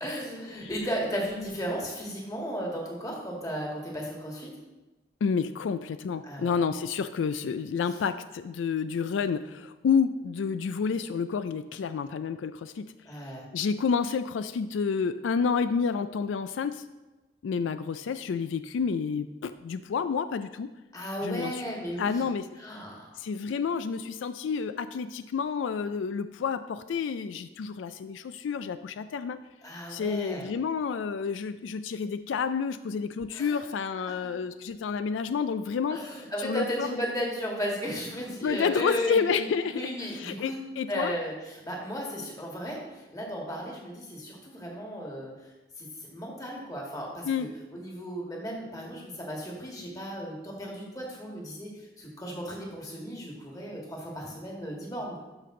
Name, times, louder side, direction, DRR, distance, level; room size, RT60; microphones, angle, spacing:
voice 1, 0.0-4.5 6.2-6.5 13.1-13.5 20.9-22.2 22.6-23.2 29.6-30.5 33.3-33.6 34.1-34.3 35.9-39.5 39.7-45.5 45.8-47.5 47.7-55.2, equal, 20° left, -2 dB, 1.7 m, -35 dB
voice 2, 5.2-12.9 13.5-16.8 17.4-20.7 21.2-21.6 22.0-22.5 23.2-29.4 29.9-36.0 36.4-36.9 38.4-41.1 47.2-47.5, left 6 dB, 85° left, 12 dB, 0.3 m, -29 dB
12.5 x 5.3 x 3.7 m, 1.1 s
head